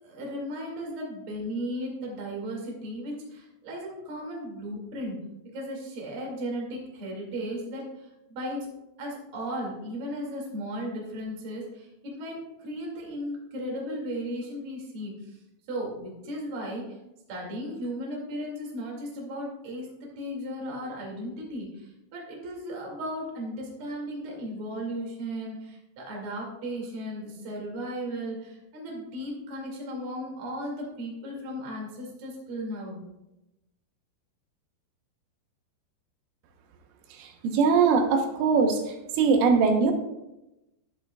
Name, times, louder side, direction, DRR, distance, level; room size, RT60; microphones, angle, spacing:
voice 1, 0.0-5.2 5.5-8.7 9.0-15.4 15.7-16.9 17.3-33.0, equal, 40° right, -2 dB, 2.3 m, -36 dB
voice 2, 37.2-38.8 39.2-39.9, right 5 dB, 85° right, 4 dB, 3.5 m, -21 dB
11.0 x 11.0 x 2.3 m, 0.94 s
omnidirectional pair, 5.6 m